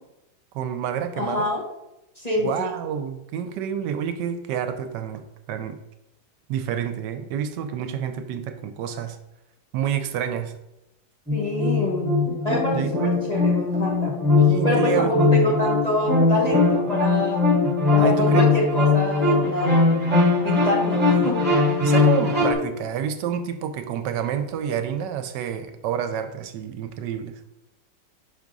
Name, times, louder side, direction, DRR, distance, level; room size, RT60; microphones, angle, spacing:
voice 1, 0.5-1.5 2.4-5.2 5.5-5.8 6.5-9.2 9.7-10.6 12.7-13.2 14.4-15.7 18.0-18.5 21.8-27.4, right 8 dB, 80° right, 9 dB, 1.2 m, -28 dB
voice 2, 1.2-1.6 2.2-2.7 11.3-12.1 12.4-14.2 14.6-17.4 17.9-19.9 20.4-21.4, left 1 dB, 25° left, -3 dB, 1.0 m, -26 dB
sound 1, 11.3-22.5, left 3 dB, 5° right, 1.8 m, -20 dB
6.0 x 3.6 x 5.2 m, 0.90 s
omnidirectional pair, 1.9 m